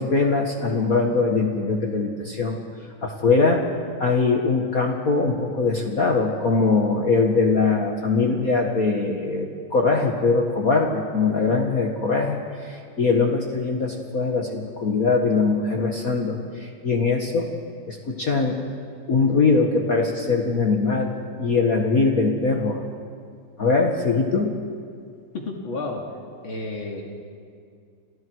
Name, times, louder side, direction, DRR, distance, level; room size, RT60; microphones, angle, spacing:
voice 1, 0.0-2.6 3.0-3.7 4.0-17.5 17.9-18.6 19.1-21.1 21.4-22.8 23.6-24.6, left 4 dB, 40° left, 1 dB, 1.9 m, -22 dB
voice 2, 25.3-26.0 26.4-27.0, left 2 dB, 65° left, -1 dB, 3.3 m, -31 dB
29.5 x 27.5 x 4.8 m, 2.2 s
omnidirectional pair, 2.4 m